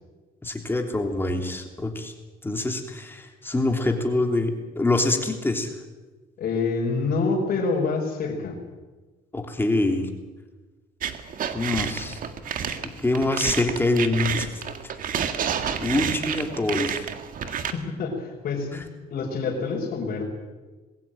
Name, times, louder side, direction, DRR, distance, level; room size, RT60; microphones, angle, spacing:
voice 1, 0.4-2.1 2.4-5.7 9.3-10.1 11.5-12.2 13.0-14.5 14.8-14.9 15.8-17.1 18.7-18.8, left 2 dB, 15° left, 3 dB, 3.3 m, -25 dB
voice 2, 6.4-8.6 17.4-18.8 19.1-20.2, left 4 dB, 55° left, -4 dB, 4.9 m, -27 dB
sound 1, 11.0-17.7, right 8 dB, 55° right, 1.8 m, -29 dB
21.0 x 16.0 x 9.1 m, 1.3 s
cardioid pair, 110°, 17 cm